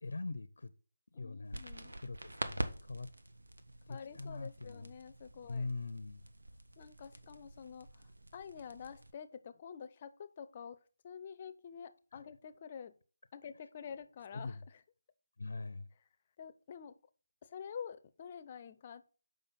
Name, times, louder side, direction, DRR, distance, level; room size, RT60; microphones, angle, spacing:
voice 1, 0.0-0.7 1.1-1.6 2.0-3.1 3.9-4.9 5.5-6.3 12.1-12.2 14.3-14.6 15.4-15.9, left 3 dB, 75° left, 0.6 m, -42 dB
voice 2, 1.1-1.9 3.9-5.7 6.8-8.0 8.3-10.8 11.0-12.9 13.3-14.6 16.4-17.0 17.4-19.1, left 7 dB, 35° left, 0.6 m, -48 dB
sound 1, 1.5-9.1, right 1 dB, 90° right, 1.1 m, -46 dB
7.3 x 5.2 x 4.1 m
figure-of-eight pair, 160°, 0 cm